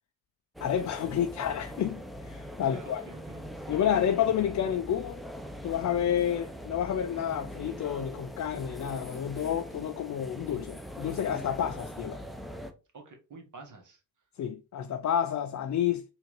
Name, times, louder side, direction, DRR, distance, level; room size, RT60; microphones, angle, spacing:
voice 1, 0.6-3.0 3.7-5.2 5.6-12.2 14.4-16.0, left 9 dB, 45° left, 0.5 m, -30 dB
sound 1, 0.6-12.7, equal, ahead, 0.6 m, -42 dB
voice 2, 2.6-3.5 12.9-14.0, right 3 dB, 45° right, 1.4 m, -48 dB
4.3 x 2.7 x 3.1 m
supercardioid pair, 45°, 43 cm